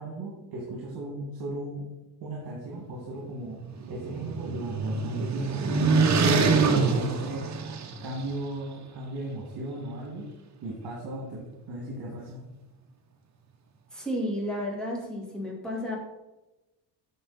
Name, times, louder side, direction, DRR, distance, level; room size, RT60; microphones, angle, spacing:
voice 1, 0.0-1.9 2.2-3.6 3.9-5.6 6.0-7.4 8.0-10.3 10.6-12.4, right 1 dB, 60° right, -3 dB, 2.4 m, -36 dB
sound 1, 3.5-8.2, right 4 dB, 40° right, 1.0 m, -25 dB
voice 2, 13.9-16.0, equal, ahead, -3 dB, 2.1 m, -32 dB
9.4 x 6.0 x 4.2 m, 1.0 s
cardioid pair, 150°, 43 cm